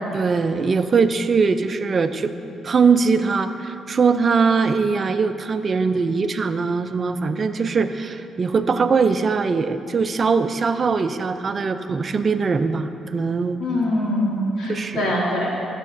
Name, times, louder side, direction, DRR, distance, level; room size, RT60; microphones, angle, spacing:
voice 1, 0.1-2.3 2.6-13.6 14.7-15.2, right 5 dB, 40° right, 10 dB, 0.4 m, -21 dB
voice 2, 13.6-15.5, left 1 dB, 80° left, -5 dB, 2.2 m, -23 dB
14.5 x 7.3 x 2.6 m, 2.7 s
cardioid pair, 90°, 0 cm